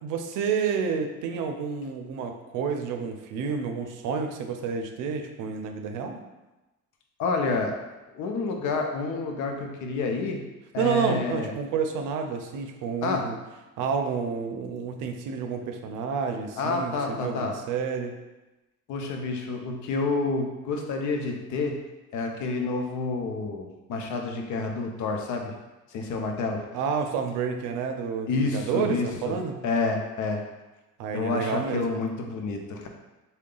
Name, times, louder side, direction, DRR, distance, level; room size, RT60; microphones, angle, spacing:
voice 1, 0.0-6.2 10.8-13.4 13.8-18.1 26.7-29.6 31.0-32.0, right 6 dB, 85° right, 5 dB, 0.5 m, -29 dB
voice 2, 7.2-7.7 8.1-10.4 10.7-11.5 13.0-13.2 16.6-17.5 18.9-21.8 22.1-25.5 25.9-26.6 28.3-29.1 29.6-30.4 31.1-32.9, left 3 dB, 75° left, 3 dB, 0.6 m, -29 dB
3.7 x 2.2 x 3.7 m, 1.1 s
cardioid pair, 125°, 30 cm